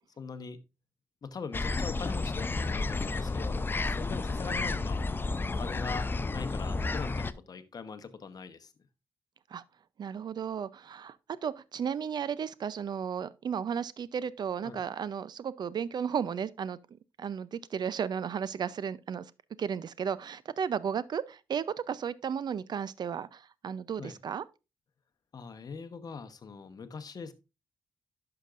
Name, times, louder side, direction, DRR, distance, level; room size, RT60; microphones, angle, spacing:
voice 1, 0.2-0.6 1.2-5.0 5.5-8.7 14.6-14.8 24.0-24.2 25.3-27.3, left 5 dB, 45° left, 1.0 m, -42 dB
sound 1, 1.5-7.3, left 3 dB, 25° left, 0.5 m, -31 dB
voice 2, 10.0-11.2 11.4-16.8 17.2-19.3 19.6-24.4, right 7 dB, 55° right, 0.5 m, -34 dB
11.0 x 5.9 x 2.5 m
cardioid pair, 70°, 9 cm